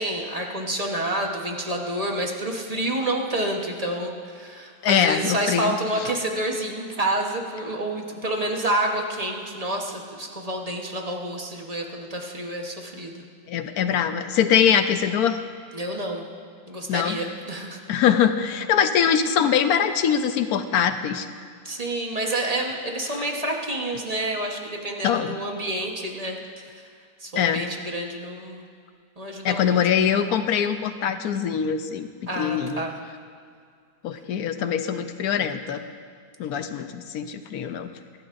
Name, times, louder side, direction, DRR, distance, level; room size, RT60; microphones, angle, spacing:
voice 1, 0.0-13.2 15.7-16.3 16.7-17.8 21.6-26.4 26.7-26.8 27.2-28.6 29.2-29.8 32.3-33.0 36.7-36.9, right 1 dB, 25° right, 1 dB, 1.0 m, -28 dB
voice 2, 4.8-5.7 13.5-15.4 16.9-17.2 17.9-21.3 25.0-25.4 27.4-27.6 29.4-32.1 32.4-32.8 34.0-35.8 36.4-37.9, left 8 dB, 70° left, 9 dB, 1.0 m, -23 dB
23.5 x 12.0 x 2.6 m, 2.2 s
omnidirectional pair, 1.9 m